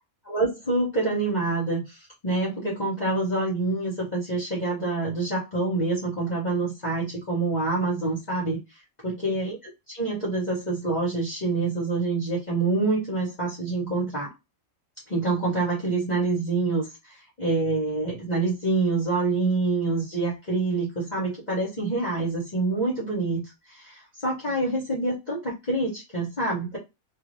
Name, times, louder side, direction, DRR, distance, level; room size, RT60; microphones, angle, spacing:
voice 1, 0.2-9.6 9.9-14.3 15.1-23.4 23.7-26.8, right 3 dB, 35° left, 1.0 m, -26 dB
2.6 x 2.6 x 3.0 m
omnidirectional pair, 1.5 m